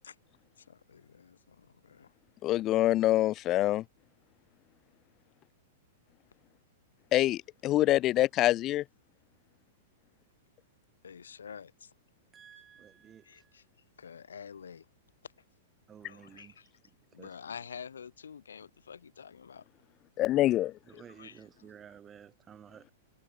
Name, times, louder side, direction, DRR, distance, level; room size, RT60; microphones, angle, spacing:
voice 1, 0.6-2.1 11.0-11.9 13.2-13.6 14.0-14.9 15.2-15.3 16.1-16.7 17.1-19.6 21.1-21.7, left 7 dB, 85° left, 6.4 m, -48 dB
voice 2, 2.4-3.8 7.1-8.8 20.2-20.7, left 15 dB, 35° left, 1.0 m, -25 dB
voice 3, 12.3-13.5 15.9-16.5 17.2-17.3 20.9-22.9, right 8 dB, 25° right, 2.3 m, -53 dB
hypercardioid pair, 115°, 0 cm